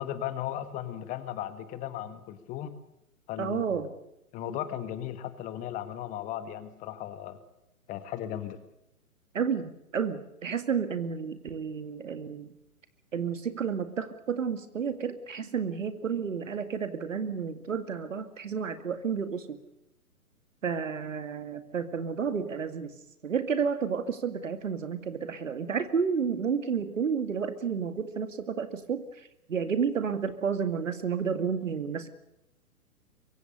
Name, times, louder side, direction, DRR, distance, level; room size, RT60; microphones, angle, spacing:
voice 1, 0.0-2.7 3.3-3.8 4.3-7.4 7.9-8.6, left 11 dB, 20° left, 13 dB, 1.4 m, -36 dB
voice 2, 3.4-3.9 9.3-12.5 13.1-19.6 20.6-22.9 23.2-32.1, right 6 dB, 60° right, 11 dB, 2.3 m, -31 dB
24.0 x 23.5 x 6.7 m, 0.85 s
figure-of-eight pair, 125°, 44 cm